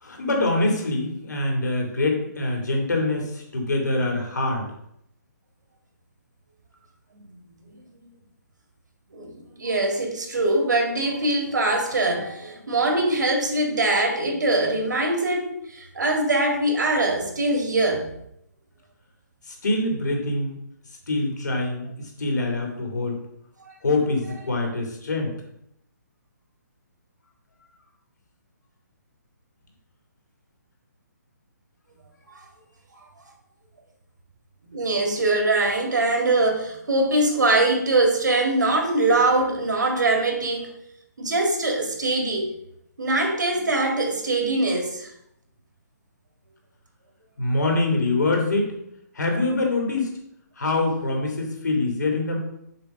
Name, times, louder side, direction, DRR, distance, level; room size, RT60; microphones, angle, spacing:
voice 1, 0.0-4.7 19.5-20.6 21.1-23.2 23.8-25.3 47.4-48.7 49.1-50.2 50.6-52.4, left 2 dB, 75° left, 1 dB, 2.2 m, -24 dB
voice 2, 9.1-18.1 23.7-23.8 32.3-32.5 34.7-40.7 41.2-42.5 43.0-45.1, right 2 dB, 75° right, 2 dB, 1.9 m, -23 dB
6.8 x 3.0 x 5.3 m, 0.76 s
hypercardioid pair, 180°, 10 cm